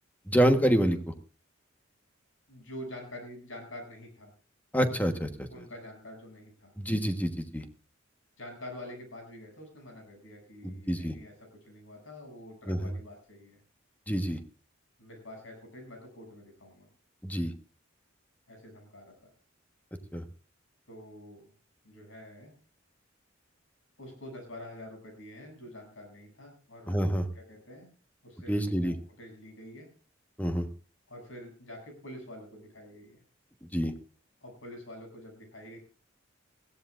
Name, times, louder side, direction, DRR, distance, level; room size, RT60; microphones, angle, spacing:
voice 1, 0.3-1.0 4.7-5.5 6.8-7.6 10.6-11.1 12.7-12.9 14.1-14.4 17.2-17.5 20.1-20.2 26.9-27.2 28.5-28.9 30.4-30.7 33.7-33.9, equal, 10° left, 7 dB, 1.3 m, -27 dB
voice 2, 2.5-4.3 5.5-6.7 8.4-13.6 15.0-16.9 18.5-19.2 20.9-21.5 21.8-22.5 24.0-27.0 27.3-27.9 28.2-29.9 31.1-33.2 34.4-35.8, left 1 dB, 80° left, 3 dB, 7.8 m, -47 dB
21.5 x 15.0 x 2.6 m, 0.36 s
head